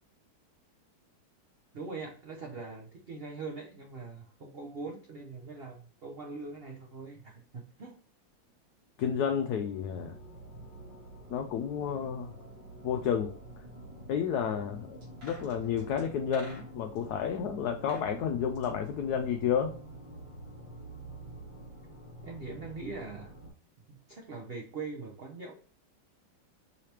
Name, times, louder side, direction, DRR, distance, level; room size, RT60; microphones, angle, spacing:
voice 1, 1.7-8.0 22.2-23.3 23.9-25.8, right 4 dB, 80° right, 1 dB, 0.5 m, -42 dB
voice 2, 9.0-10.1 11.3-12.3 12.8-13.3 14.1-19.7, left 8 dB, 70° left, 5 dB, 0.9 m, -31 dB
sound 1, 9.2-23.5, right 2 dB, 25° right, 1.5 m, -48 dB
sound 2, 15.0-17.0 17.7-18.1 18.4-19.8 20.0-20.1, right 1 dB, 65° right, 3.2 m, -51 dB
5.6 x 3.3 x 2.9 m, 0.41 s
omnidirectional pair, 2.1 m